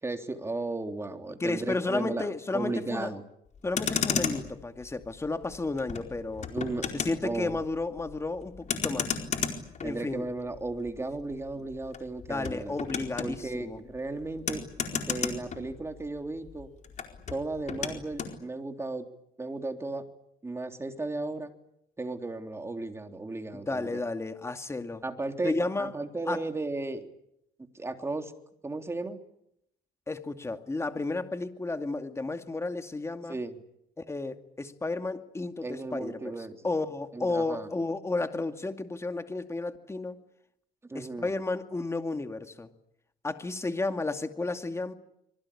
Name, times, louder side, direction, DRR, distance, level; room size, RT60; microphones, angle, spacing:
voice 1, 0.0-2.3 2.5-3.2 6.5-6.8 7.2-7.6 9.8-12.7 13.2-14.6 14.9-16.7 17.3-19.1 19.4-20.0 20.4-21.5 22.0-24.0 25.0-27.1 27.8-28.3 28.6-29.2 33.3-33.6 35.6-36.7 37.1-37.7 40.9-41.3, right 2 dB, 15° right, 5 dB, 3.4 m, -35 dB
voice 2, 1.4-3.1 3.6-6.5 6.9-9.2 9.8-10.3 12.3-13.8 23.5-25.0 25.4-25.9 26.3-26.4 30.1-33.4 34.0-36.3 36.6-40.2 40.9-42.7 43.2-44.9, left 3 dB, 15° left, 7 dB, 2.4 m, -32 dB
Motor vehicle (road), 3.5-16.2 16.4-18.4, left 6 dB, 45° left, 4.5 m, -35 dB
26.0 x 24.0 x 8.7 m, 0.77 s
cardioid pair, 110°, 17 cm